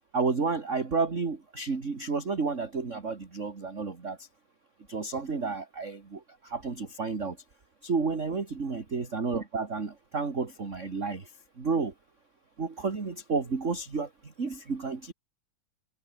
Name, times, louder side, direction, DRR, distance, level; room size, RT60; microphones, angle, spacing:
voice 1, 0.1-4.2 4.9-6.2 6.5-7.4 7.8-11.2 11.6-11.9 12.6-14.1 14.4-15.1, right 4 dB, 25° right, 2.3 m, -31 dB
omnidirectional pair, 3.5 m